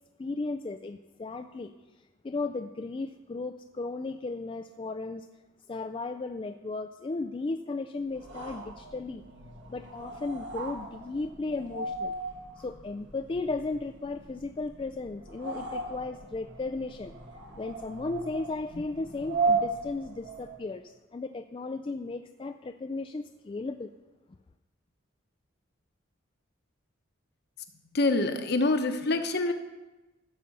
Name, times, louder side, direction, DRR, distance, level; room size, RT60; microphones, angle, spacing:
voice 1, 0.2-5.3 5.7-9.2 9.7-12.1 12.6-17.1 17.6-23.9, left 3 dB, 25° left, 7 dB, 0.3 m, -35 dB
sound 1, 8.1-20.7, right 3 dB, 60° right, 1.5 m, -36 dB
voice 2, 27.9-29.5, left 2 dB, 55° left, 7 dB, 1.0 m, -26 dB
14.5 x 6.9 x 5.4 m, 1.1 s
head